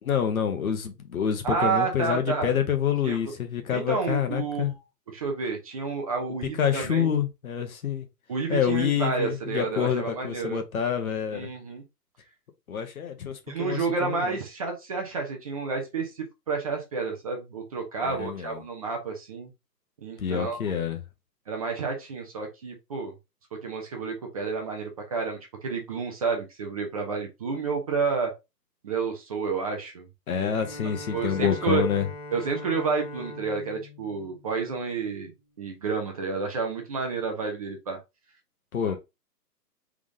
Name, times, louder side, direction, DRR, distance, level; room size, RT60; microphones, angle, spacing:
voice 1, 0.0-4.7 6.6-8.1 8.5-11.5 12.7-14.3 18.0-18.6 20.2-21.0 30.3-32.1 38.7-39.0, left 8 dB, 55° left, 1.1 m, -27 dB
voice 2, 1.4-2.5 3.0-3.2 3.7-4.7 5.1-7.1 8.3-10.6 11.3-11.8 13.5-19.5 20.0-20.6 21.5-23.1 23.6-28.3 28.8-30.1 30.3-30.5 31.1-31.8 32.3-35.3 35.6-38.0, right 4 dB, 20° right, 0.7 m, -30 dB
Bowed string instrument, 30.5-35.3, left 2 dB, 25° left, 0.5 m, -42 dB
3.6 x 3.6 x 3.6 m
figure-of-eight pair, 140°, 50 cm